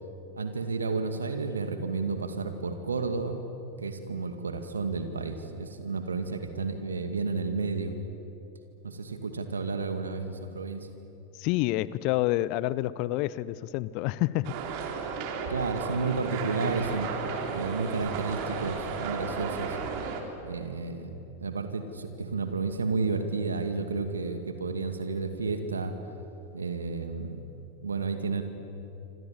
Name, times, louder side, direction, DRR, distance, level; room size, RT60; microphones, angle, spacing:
voice 1, 0.4-3.4 3.8-8.0 8.8-10.9 15.5-17.1 17.5-19.8 20.4-25.9 26.5-27.5 27.8-28.4, right 4 dB, 75° right, 8 dB, 2.3 m, -31 dB
voice 2, 11.4-14.5, left 17 dB, 45° left, 19 dB, 0.7 m, -28 dB
sound 1, 14.4-20.2, right 5 dB, 45° right, 3.4 m, -34 dB
26.5 x 26.0 x 7.4 m, 3.0 s
figure-of-eight pair, 90°, 0 cm